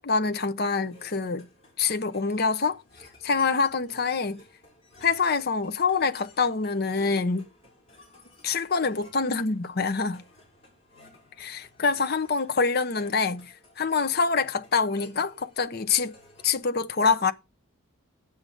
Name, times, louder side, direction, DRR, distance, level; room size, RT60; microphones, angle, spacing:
voice 1, 0.0-1.5 1.8-2.8 3.2-4.4 5.0-7.5 8.4-10.2 11.4-16.1 16.4-17.3, left 4 dB, 45° left, 0.7 m, -25 dB
sound 1, 0.6-16.6, left 2 dB, 25° left, 6.1 m, -55 dB
8.6 x 7.8 x 5.2 m
head